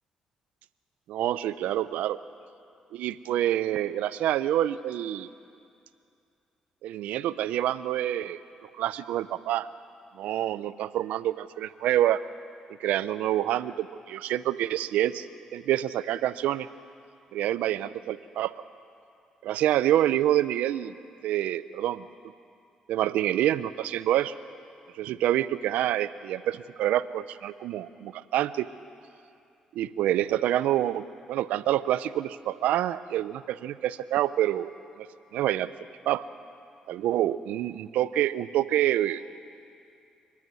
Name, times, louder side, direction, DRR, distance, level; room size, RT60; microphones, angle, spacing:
voice 1, 1.1-2.2 2.9-5.3 6.8-8.4 8.8-9.7 10.1-12.2 12.8-15.3 15.5-16.7 17.3-18.5 19.4-20.9 21.2-22.1 22.9-24.3 25.0-28.7 29.7-34.7 35.0-35.1 35.3-35.7 36.1-36.2 36.9-39.2, right 12 dB, 80° right, 15 dB, 0.6 m, -27 dB
29.5 x 11.0 x 9.4 m, 2.5 s
supercardioid pair, 70°, 2 cm